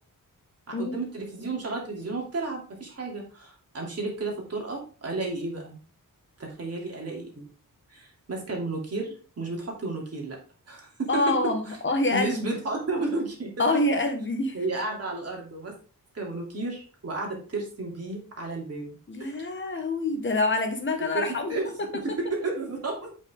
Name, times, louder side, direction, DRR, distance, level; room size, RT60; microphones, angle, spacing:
voice 1, 0.7-5.8 6.4-7.5 7.9-10.4 10.7-11.2 11.7-11.8 12.1-13.6 14.5-15.7 16.1-19.3 21.1-21.7 21.9-23.1, right 3 dB, 45° right, -1 dB, 2.8 m, -32 dB
voice 2, 11.1-12.6 13.6-14.6 19.1-21.5, left 2 dB, 35° left, 6 dB, 1.4 m, -26 dB
8.4 x 5.6 x 3.6 m, 0.38 s
wide cardioid pair, 165°, 34 cm